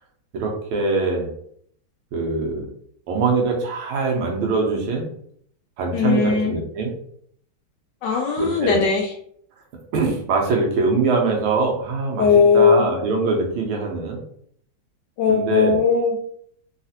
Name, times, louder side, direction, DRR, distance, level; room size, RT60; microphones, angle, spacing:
voice 1, 0.3-1.3 2.1-2.7 3.1-5.1 5.8-6.9 8.4-8.8 9.9-12.3 12.5-14.2 15.3-15.8, right 4 dB, 90° right, 0 dB, 1.7 m, -23 dB
voice 2, 5.9-6.5 8.0-9.1 12.2-12.9 15.2-16.2, left 5 dB, 75° left, 1 dB, 1.0 m, -18 dB
4.0 x 2.4 x 2.7 m, 0.65 s
omnidirectional pair, 2.3 m